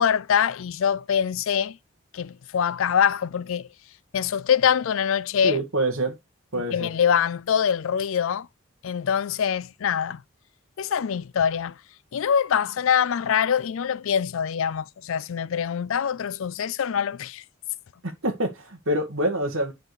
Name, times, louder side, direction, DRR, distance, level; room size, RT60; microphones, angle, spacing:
voice 1, 0.0-1.8 2.1-3.7 4.1-5.6 6.7-8.5 8.8-10.2 10.8-11.8 12.1-17.4, left 8 dB, 60° left, 0.4 m, -24 dB
voice 2, 5.4-6.2 6.5-6.9 18.0-19.7, right 1 dB, 65° right, 1.8 m, -26 dB
7.6 x 5.1 x 4.8 m
head